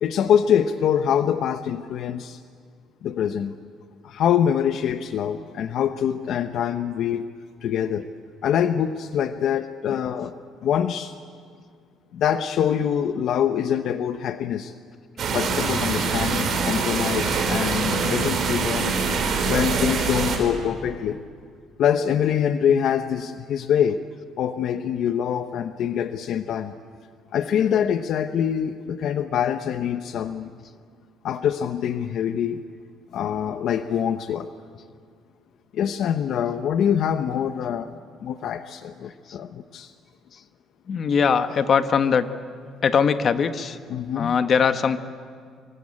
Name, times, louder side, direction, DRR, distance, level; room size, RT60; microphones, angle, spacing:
voice 1, 0.0-2.4 3.0-3.5 4.0-7.3 7.6-8.0 8.4-10.3 10.6-11.1 12.1-14.7 15.3-19.0 19.4-21.2 21.8-24.0 24.4-26.7 27.3-30.5 31.2-32.6 33.1-34.5 35.7-37.9 38.2-39.9 43.9-44.3, left 9 dB, 60° left, 9 dB, 0.8 m, -24 dB
under the subway bridge w trains passing, 15.2-20.4, right 4 dB, 50° right, 4.9 m, -24 dB
voice 2, 40.9-42.3 42.8-43.8 44.1-45.0, left 6 dB, 40° left, 9 dB, 1.2 m, -21 dB
25.5 x 24.0 x 8.7 m, 2.1 s
cardioid pair, 140°, 0 cm